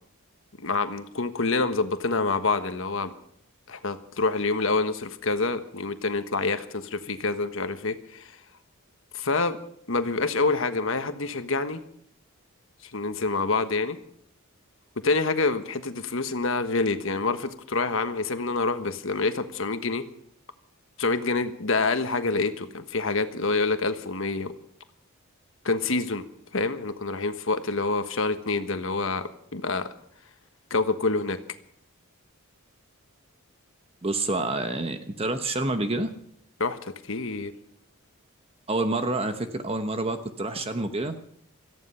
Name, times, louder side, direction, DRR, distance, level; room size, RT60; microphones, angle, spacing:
voice 1, 0.6-3.1 3.7-8.4 9.1-9.6 9.9-11.8 12.8-14.0 15.0-20.0 21.0-24.5 25.6-26.2 26.5-29.8 30.7-31.4 36.6-37.5, left 3 dB, 60° left, 9 dB, 1.3 m, -27 dB
voice 2, 34.0-36.1 38.7-41.1, right 2 dB, 25° right, 8 dB, 1.0 m, -28 dB
17.5 x 14.0 x 5.7 m, 0.69 s
head